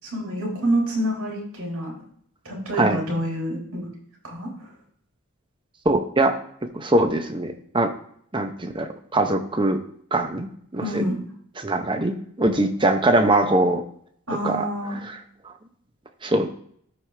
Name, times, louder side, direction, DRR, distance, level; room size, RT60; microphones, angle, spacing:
voice 1, 0.0-1.9 2.4-3.9 4.2-4.7 10.8-11.2 14.3-15.0, right 1 dB, 85° right, -3 dB, 4.1 m, -27 dB
voice 2, 5.8-6.4 6.7-7.9 8.3-9.8 10.1-10.5 10.7-11.1 11.6-13.8 14.4-14.7 15.4-15.5 16.2-16.5, right 1 dB, 20° right, 6 dB, 0.8 m, -22 dB
13.5 x 4.8 x 3.4 m, 0.62 s
head